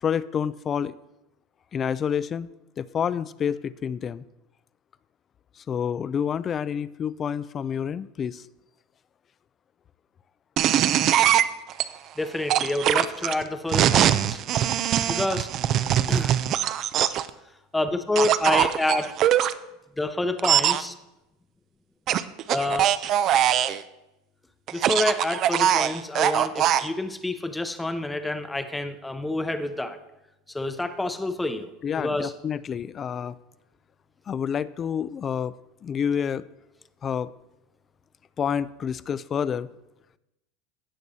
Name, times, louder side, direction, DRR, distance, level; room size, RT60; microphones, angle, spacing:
voice 1, 0.0-0.9 1.7-2.5 2.8-4.2 5.7-8.4 31.8-33.3 34.3-35.5 35.8-36.4 37.0-37.3 38.4-39.7, left 7 dB, 30° left, 17 dB, 0.3 m, -28 dB
sound 1, 10.6-11.8 12.5-17.3 18.2-19.5 20.4-20.8 22.1-23.8 24.7-26.9, right 11 dB, 45° right, 0.4 m, -22 dB
voice 2, 12.2-14.4 15.1-15.5 16.1-16.3 17.7-19.1 20.0-20.9 22.5-22.9 23.4-23.5 24.7-30.0 30.5-31.7 32.0-32.3, left 2 dB, 10° left, 9 dB, 0.7 m, -28 dB
16.5 x 6.0 x 2.8 m, 0.93 s
supercardioid pair, 130°, 0 cm